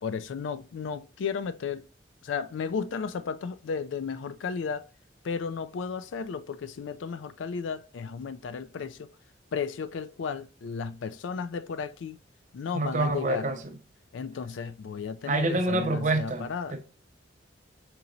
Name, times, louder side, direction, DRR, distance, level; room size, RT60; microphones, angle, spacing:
voice 1, 0.0-1.9 2.2-4.9 5.2-9.1 9.5-12.2 12.5-13.5 14.1-16.8, left 5 dB, 80° left, 0.4 m, -34 dB
voice 2, 12.7-13.6 15.3-16.8, right 2 dB, 40° right, 0.6 m, -27 dB
5.3 x 2.9 x 2.5 m
head